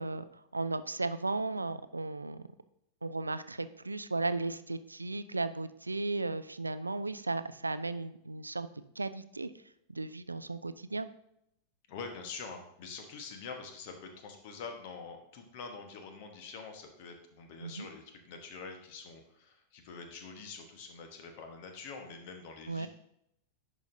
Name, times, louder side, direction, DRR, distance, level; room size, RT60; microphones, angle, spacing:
voice 1, 0.0-2.4 3.0-8.7 9.0-9.5 9.9-11.1 17.6-17.9 22.7-22.9, right 3 dB, 80° right, 13 dB, 0.3 m, -35 dB
voice 2, 11.9-22.9, left 5 dB, 50° left, 5 dB, 1.2 m, -45 dB
10.5 x 5.1 x 2.7 m, 0.77 s
figure-of-eight pair, 90°, 0 cm